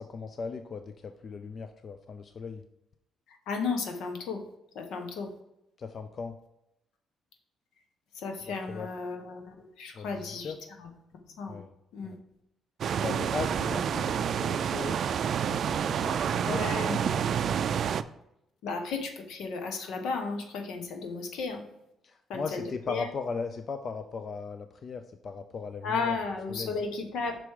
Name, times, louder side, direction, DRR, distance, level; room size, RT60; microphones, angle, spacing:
voice 1, 0.0-2.6 5.8-6.4 8.7-8.9 9.9-10.6 11.5-11.7 12.0-12.2 13.0-15.2 15.5-16.6 22.0-26.2 26.5-26.8, left 5 dB, 45° left, 8 dB, 0.5 m, -38 dB
voice 2, 3.5-4.4 4.7-5.3 8.1-10.5 10.8-10.9 11.4-11.6 11.9-12.1 16.5-17.4 18.6-21.6 22.3-23.1 25.8-27.4, left 4 dB, 85° left, 5 dB, 1.2 m, -34 dB
sound 1, 12.8-18.0, right 8 dB, 60° right, 0.3 m, -28 dB
6.1 x 4.8 x 4.7 m, 0.84 s
cardioid pair, 90°, 0 cm